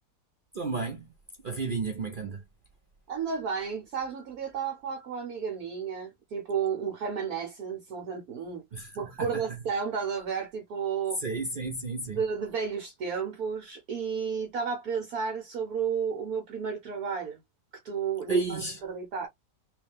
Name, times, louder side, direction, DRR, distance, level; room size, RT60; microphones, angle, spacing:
voice 1, 0.5-1.1 1.4-2.4 8.7-9.4 11.2-12.2 18.3-18.8, right 3 dB, 80° right, 0.4 m, -32 dB
voice 2, 3.1-8.6 8.9-11.2 12.1-17.4 17.8-19.3, right 6 dB, 65° right, 1.3 m, -32 dB
3.2 x 3.1 x 3.4 m
omnidirectional pair, 1.8 m